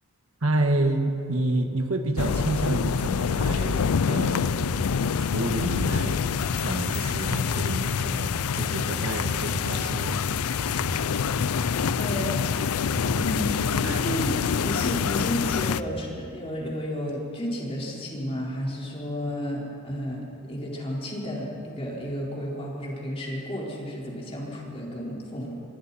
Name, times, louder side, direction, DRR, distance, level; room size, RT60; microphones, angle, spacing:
voice 1, 0.4-4.6 5.2-6.3 6.6-10.2 13.8-14.0, right 1 dB, 65° right, 5 dB, 1.7 m, -29 dB
sound 1, 2.2-15.8, left 7 dB, 80° left, 0.4 m, -26 dB
sound 2, 4.2-16.0, equal, 5° left, 5.3 m, -37 dB
voice 2, 12.0-12.5 13.1-25.6, equal, 25° left, -4 dB, 4.3 m, -32 dB
27.5 x 23.0 x 4.3 m, 2.5 s
head